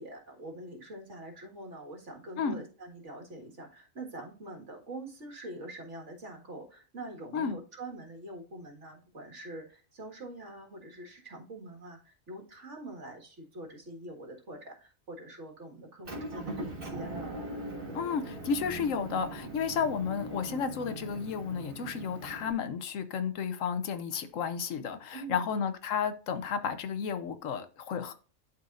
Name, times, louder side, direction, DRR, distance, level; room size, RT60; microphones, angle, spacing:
voice 1, 0.0-17.4 25.1-25.5, right 1 dB, 65° right, 2.1 m, -44 dB
Motor vehicle (road) / Engine, 16.0-22.5, right 2 dB, 45° right, 1.8 m, -40 dB
voice 2, 17.9-28.1, left 6 dB, 80° left, 1.2 m, -32 dB
11.5 x 4.3 x 2.5 m
omnidirectional pair, 1.3 m